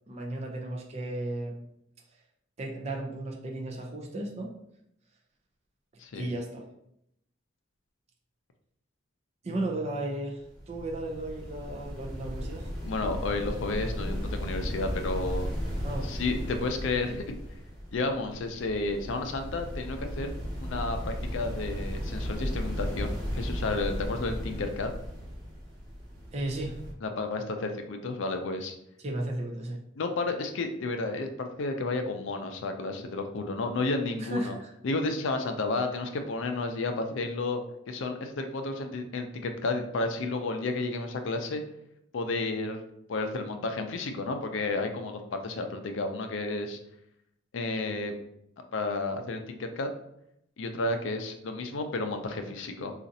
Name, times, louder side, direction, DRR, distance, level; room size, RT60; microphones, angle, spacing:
voice 1, 0.1-1.6 2.6-4.5 6.1-6.7 9.4-10.4 10.7-12.7 15.8-16.1 26.3-26.8 29.0-29.8 34.2-34.7, right 1 dB, 30° right, 0 dB, 0.4 m, -34 dB
sound 1, 10.4-26.9, equal, 5° left, 1.4 m, -35 dB
voice 2, 12.8-15.5 16.0-17.4 17.9-20.3 20.6-24.9 27.0-28.8 30.0-34.5 34.8-37.6 37.9-41.6 42.1-42.8 43.1-46.8 47.5-48.1 48.7-49.9 50.6-52.9, left 3 dB, 70° left, 6 dB, 0.4 m, -32 dB
4.0 x 2.4 x 2.7 m, 0.77 s
head